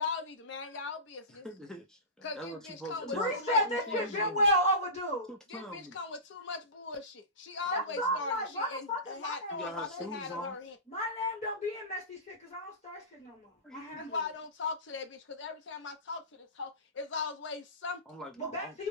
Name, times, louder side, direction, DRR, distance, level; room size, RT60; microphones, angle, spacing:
voice 1, 0.0-1.5 2.2-4.3 5.5-10.8 14.0-18.0, left 4 dB, 65° left, 0.5 m, -39 dB
voice 2, 1.4-4.4 5.3-6.0 7.7-8.2 9.5-10.5 13.6-14.0 18.1-18.7, equal, 5° left, 0.4 m, -44 dB
voice 3, 3.0-5.3 7.7-10.0 10.3-10.4 10.9-14.2 18.4-18.9, equal, 35° left, 1.1 m, -32 dB
2.1 x 2.0 x 3.1 m
head